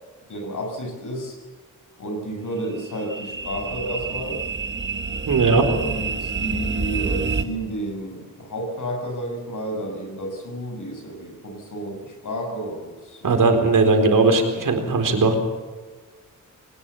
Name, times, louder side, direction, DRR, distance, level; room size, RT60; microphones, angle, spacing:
voice 1, 0.3-1.4 2.0-4.4 5.6-13.5, right 1 dB, 65° left, 3 dB, 7.1 m, -31 dB
sound 1, 2.4-7.5, right 4 dB, 35° right, 1.7 m, -28 dB
voice 2, 5.3-5.6 13.2-15.4, right 3 dB, 70° right, 5 dB, 4.3 m, -18 dB
22.5 x 19.5 x 7.1 m, 1.4 s
wide cardioid pair, 115°, 33 cm